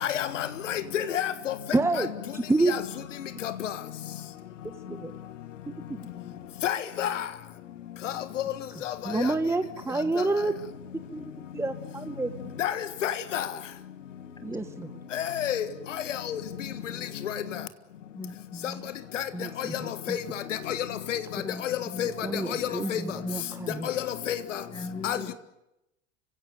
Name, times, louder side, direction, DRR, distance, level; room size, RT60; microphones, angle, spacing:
voice 1, 0.0-1.5 2.0-2.1 2.7-2.8 3.4-3.7 6.6-7.2 8.0-8.2 8.8-8.9 12.6-13.5 15.1-15.7 16.1-16.4 17.2-17.3 19.1-19.2 19.6-19.8 20.1-20.2 20.7-21.2 21.6-22.3 22.6-23.0 23.8-24.6 25.0-25.3, left 10 dB, 75° left, 1.7 m, -30 dB
voice 2, 1.7-2.7 4.6-5.1 5.7-6.0 9.0-10.5 11.1-11.2 11.5-12.3 14.4-14.9 19.3-20.2 22.2-23.9, right 2 dB, 5° right, 1.2 m, -29 dB
voice 3, 18.1-18.9 21.4-21.6 21.9-22.1 22.6-23.3 23.6-23.7 24.7-25.3, left 3 dB, 10° left, 1.7 m, -39 dB
30.0 x 16.5 x 9.3 m
figure-of-eight pair, 75°, 38 cm